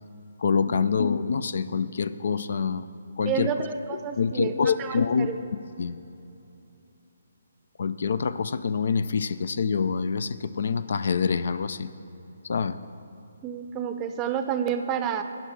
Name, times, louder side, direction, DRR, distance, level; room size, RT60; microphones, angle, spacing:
voice 1, 0.4-2.9 3.2-3.5 3.9-5.3 5.8-6.0 7.8-11.9 12.4-12.8, left 5 dB, 65° left, 14 dB, 0.4 m, -26 dB
voice 2, 3.2-5.4 13.4-15.2, right 8 dB, 20° right, 7 dB, 0.6 m, -30 dB
14.5 x 5.5 x 5.8 m, 2.9 s
hypercardioid pair, 150°, 0 cm